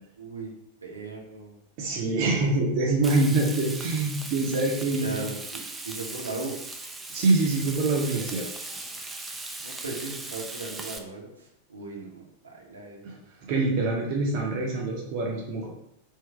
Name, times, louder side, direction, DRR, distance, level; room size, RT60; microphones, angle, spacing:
voice 1, 0.2-0.5 0.8-1.6 5.0-6.5 9.6-13.2, right 3 dB, 75° right, -2 dB, 0.9 m, -38 dB
voice 2, 1.8-5.2 7.1-8.5 13.0-13.1 13.4-15.7, right 2 dB, 45° right, -2 dB, 0.7 m, -25 dB
Frying (food), 3.0-11.0, right 2 dB, 10° right, 0.5 m, -38 dB
3.5 x 2.7 x 3.5 m, 0.78 s
figure-of-eight pair, 90°, 0 cm